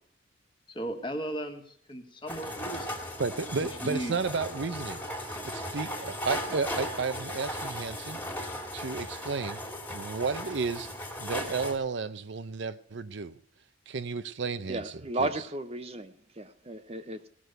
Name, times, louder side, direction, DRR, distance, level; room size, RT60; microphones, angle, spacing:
voice 1, 0.7-3.0 3.6-4.1 4.4-4.5, right 1 dB, 25° left, 1.7 m, -36 dB
sound 1, 2.3-11.8, equal, 10° left, 2.1 m, -37 dB
voice 2, 3.2-5.0 5.5-8.2 8.7-9.6 9.9-10.9 11.2-13.3 13.9-14.9 15.2-15.3, right 4 dB, 60° right, 0.6 m, -32 dB
voice 3, 14.7-17.3, right 2 dB, 30° right, 0.7 m, -34 dB
17.5 x 6.2 x 6.6 m
head